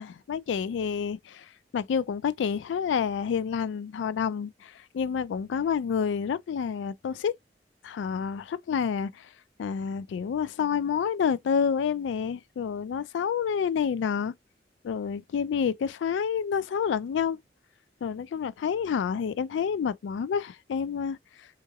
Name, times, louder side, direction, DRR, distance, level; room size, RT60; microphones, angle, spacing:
voice 1, 0.0-7.3 7.8-9.3 9.6-14.3 14.8-17.4 18.0-21.2, left 7 dB, 80° left, 0.3 m, -29 dB
3.6 x 2.9 x 2.2 m
head